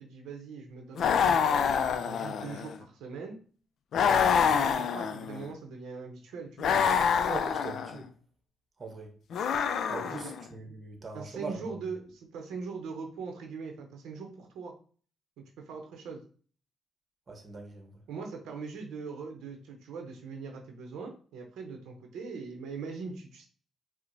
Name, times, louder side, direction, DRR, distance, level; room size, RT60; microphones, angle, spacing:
voice 1, 0.0-3.4 4.5-6.7 10.0-10.3 11.1-14.7 15.6-16.2 18.1-23.5, right 5 dB, 85° right, 0.6 m, -41 dB
sound 1, 1.0-2.7 3.9-5.5 6.6-8.0 9.3-10.4, left 7 dB, 65° left, 0.3 m, -26 dB
voice 2, 7.3-8.1 8.8-9.1 9.9-11.6 17.3-17.9, right 4 dB, 35° right, 0.9 m, -41 dB
4.4 x 2.1 x 2.6 m
cardioid pair, 90°, 0 cm